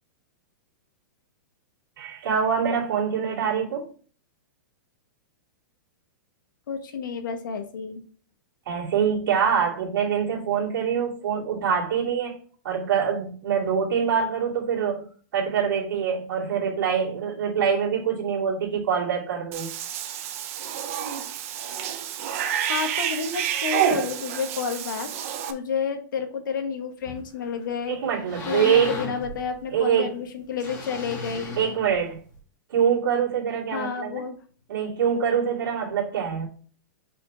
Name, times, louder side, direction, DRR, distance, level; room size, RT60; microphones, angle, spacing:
voice 1, 2.0-3.9 8.7-12.4 12.6-15.1 15.3-19.7 27.9-29.0 29.7-30.2 31.6-32.2 32.7-34.2 34.7-36.5, right 7 dB, 75° right, 2.6 m, -24 dB
voice 2, 6.7-8.0 22.7-25.1 25.5-28.0 28.5-31.6 33.7-34.4, left 6 dB, 70° left, 1.3 m, -30 dB
Cat / Bathtub (filling or washing), 19.5-25.5, right 9 dB, 45° right, 0.7 m, -29 dB
sound 1, 27.0-27.6 28.0-29.9 30.6-32.4, left 2 dB, 25° left, 2.4 m, -37 dB
5.7 x 4.3 x 4.5 m
supercardioid pair, 170°, 11 cm